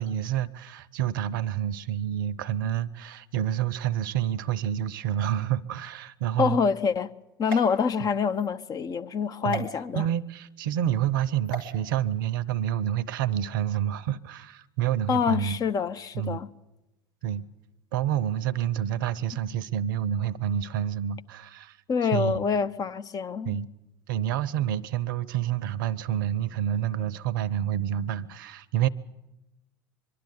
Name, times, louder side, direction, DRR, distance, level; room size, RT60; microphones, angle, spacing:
voice 1, 0.0-6.6 7.5-7.6 9.4-9.7 9.9-15.6 16.1-16.4 17.2-17.4 17.9-21.8 22.1-22.4 23.4-23.7 24.1-28.9, right 11 dB, 65° right, 0.7 m, -28 dB
voice 2, 6.4-7.1 7.4-10.0 15.1-16.5 21.9-23.6, left 6 dB, 30° left, 0.8 m, -26 dB
sound 1, 7.4-8.5 9.5-9.7 11.4-11.7, right 2 dB, 80° left, 2.6 m, -37 dB
23.5 x 12.0 x 9.6 m
figure-of-eight pair, 75°, 12 cm